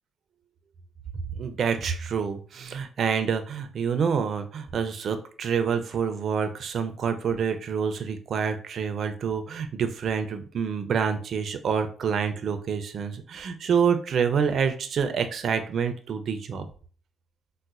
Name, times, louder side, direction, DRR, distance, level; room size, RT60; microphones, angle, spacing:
voice 1, 1.3-16.7, right 6 dB, 60° right, 8 dB, 0.4 m, -27 dB
4.0 x 2.1 x 2.4 m, 0.42 s
cardioid pair, 90°, 0 cm